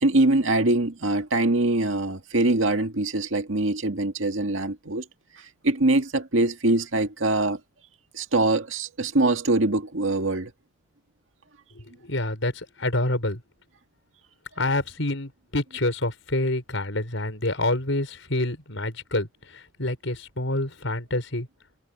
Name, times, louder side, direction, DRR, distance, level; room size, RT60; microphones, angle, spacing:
voice 1, 0.0-5.1 5.6-7.6 8.1-10.5, right 2 dB, 80° right, 2.0 m, -23 dB
voice 2, 11.7-13.4 14.6-21.5, left 2 dB, 75° left, 5.0 m, -27 dB
head